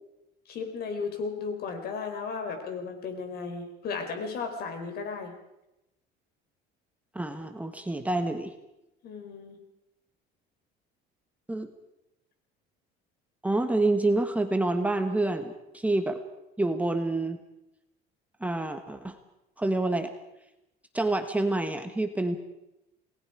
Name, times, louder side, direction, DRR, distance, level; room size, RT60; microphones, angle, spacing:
voice 1, 0.5-5.3 9.0-9.6, left 5 dB, 55° left, 6 dB, 4.5 m, -35 dB
voice 2, 7.1-8.5 11.5-11.7 13.4-16.2 16.6-17.4 18.4-19.2 19.6-20.1 20.9-22.4, right 2 dB, 5° right, 6 dB, 1.4 m, -27 dB
29.0 x 19.5 x 5.0 m, 0.90 s
cardioid pair, 140°, 19 cm